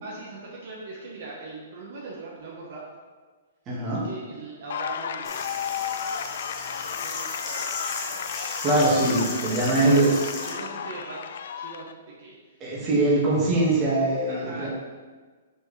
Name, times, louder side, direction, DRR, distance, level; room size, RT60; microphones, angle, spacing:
voice 1, 0.0-2.8 3.8-6.1 6.8-8.0 9.2-10.1 10.5-11.2 11.6-12.3 14.3-14.7, right 3 dB, 50° right, -4 dB, 1.1 m, -41 dB
voice 2, 3.7-4.1 8.6-10.1 12.6-14.7, right 2 dB, 20° right, -6 dB, 1.7 m, -22 dB
sound 1, 4.7-11.9, left 8 dB, 60° left, 0.4 m, -33 dB
sound 2, 5.2-10.5, left 2 dB, 20° left, 1.0 m, -36 dB
6.3 x 5.3 x 3.3 m, 1.4 s
hypercardioid pair, 165°, 0 cm